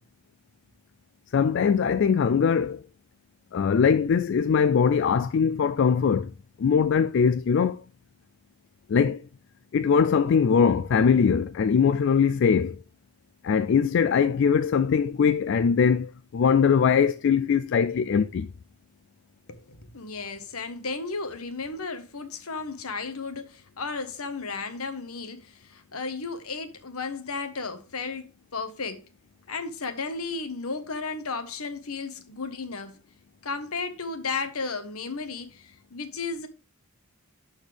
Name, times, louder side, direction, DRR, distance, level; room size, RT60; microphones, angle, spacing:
voice 1, 1.3-2.8 3.5-6.3 6.6-7.8 8.9-9.2 9.7-12.8 13.4-18.5, left 6 dB, 55° left, 0.3 m, -21 dB
voice 2, 19.5-29.0 29.5-33.0 33.4-36.5, left 4 dB, 80° left, 1.3 m, -34 dB
12.0 x 4.3 x 3.4 m
head